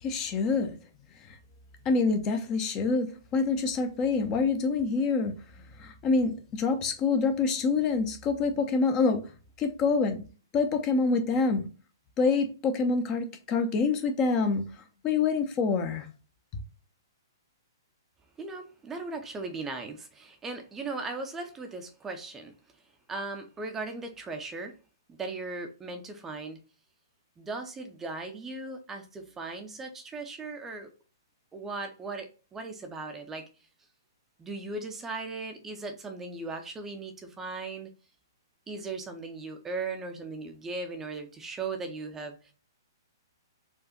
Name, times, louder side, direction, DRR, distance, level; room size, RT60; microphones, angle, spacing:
voice 1, 0.0-0.7 1.8-5.4 5.8-9.2 9.6-10.2 10.5-11.7 12.2-14.6 15.0-16.1, left 4 dB, 25° left, 0.6 m, -26 dB
voice 2, 18.4-22.5 23.1-24.8 25.2-26.6 27.4-30.9 31.5-33.5 34.4-37.9 38.7-42.5, right 3 dB, 15° right, 0.5 m, -38 dB
4.3 x 2.4 x 2.9 m
figure-of-eight pair, 115°, 2 cm